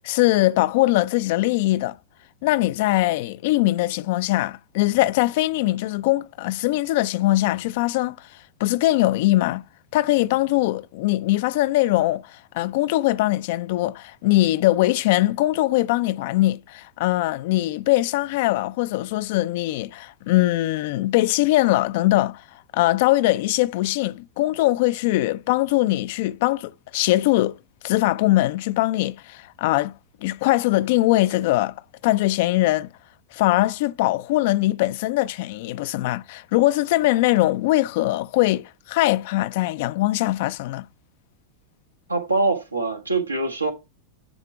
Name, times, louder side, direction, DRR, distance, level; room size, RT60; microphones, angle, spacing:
voice 1, 0.0-2.0 2.4-8.3 8.6-9.6 9.9-22.4 22.7-27.5 27.8-29.9 30.2-32.9 33.3-40.9, left 17 dB, 50° left, 0.3 m, -21 dB
voice 2, 42.1-43.7, right 3 dB, 85° right, 1.6 m, -23 dB
9.9 x 3.6 x 4.8 m
figure-of-eight pair, 90°, 0 cm